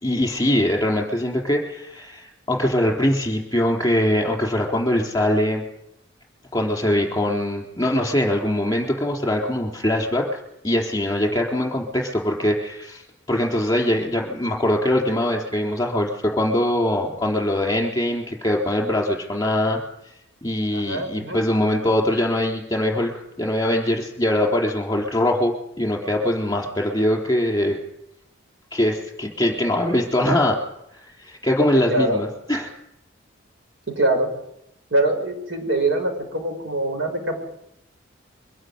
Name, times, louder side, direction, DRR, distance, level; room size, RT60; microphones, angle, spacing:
voice 1, 0.0-5.6 6.5-13.0 13.3-19.8 20.4-27.8 28.7-30.6 30.9-32.7, left 1 dB, 20° left, 0 dB, 4.0 m, -22 dB
voice 2, 20.7-21.4 31.9-32.2 33.9-34.3 34.9-37.3, right 2 dB, 80° right, 4 dB, 6.4 m, -23 dB
23.5 x 12.5 x 9.7 m, 0.82 s
head